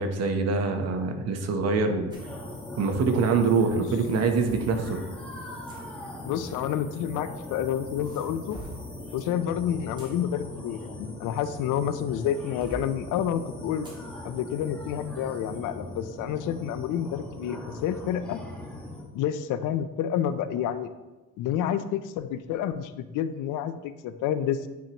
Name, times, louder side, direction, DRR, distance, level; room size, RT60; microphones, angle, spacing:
voice 1, 0.0-2.1 2.8-5.0, right 4 dB, 55° right, 5 dB, 0.9 m, -24 dB
sound 1, 2.1-19.0, left 1 dB, 5° left, 1.1 m, -40 dB
sound 2, 2.1-2.3 3.5-4.7 5.7-5.8 6.9-7.6 8.0-8.9 9.7-11.8 12.2-12.9 13.8-14.0 14.5-14.6 15.2-15.4, right 1 dB, 15° right, 1.4 m, -45 dB
voice 2, 6.2-8.6 9.1-13.9 14.2-18.4 19.1-20.9 21.4-24.7, left 10 dB, 75° left, 12 dB, 0.5 m, -29 dB
9.4 x 4.5 x 2.9 m, 1.2 s
cardioid pair, 145°, 31 cm